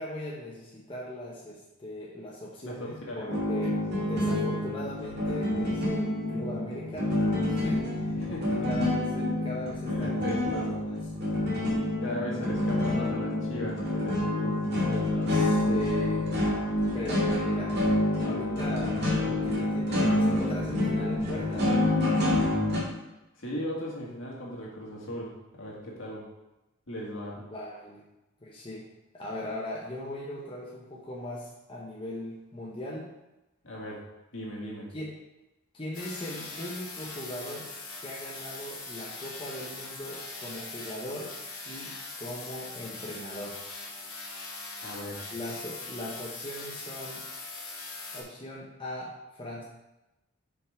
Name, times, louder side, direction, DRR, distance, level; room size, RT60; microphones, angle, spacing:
voice 1, 0.0-7.1 7.5-8.2 8.7-10.2 10.5-10.9 15.3-16.3 16.9-17.8 18.2-21.9 27.4-28.0 28.4-28.9 29.1-33.1 34.9-35.1 35.7-37.7 38.0-41.3 41.6-43.7 45.3-47.3 48.1-49.6, left 1 dB, 25° left, -4 dB, 0.9 m, -39 dB
voice 2, 2.6-3.3 8.1-8.7 9.9-10.7 12.0-15.3 23.4-26.3 26.9-27.4 33.6-34.0 34.3-34.9 44.8-45.2, equal, 65° left, -3 dB, 2.0 m, -37 dB
sound 1, 3.3-22.8, left 1 dB, 50° right, 2.2 m, -27 dB
sound 2, 35.9-48.2, left 3 dB, 85° left, 2.0 m, -41 dB
6.1 x 5.4 x 4.8 m, 0.98 s
head